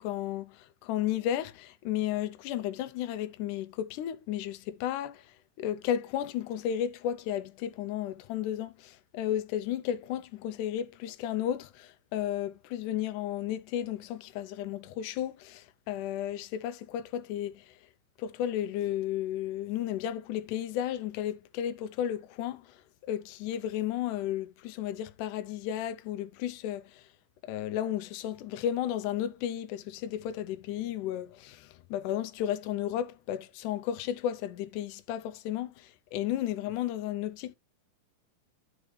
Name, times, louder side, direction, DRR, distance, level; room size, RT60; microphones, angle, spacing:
voice 1, 0.0-17.8 18.2-27.1 27.4-37.6, left 11 dB, 80° left, 2.2 m, -33 dB
12.0 x 4.6 x 3.2 m
omnidirectional pair, 3.6 m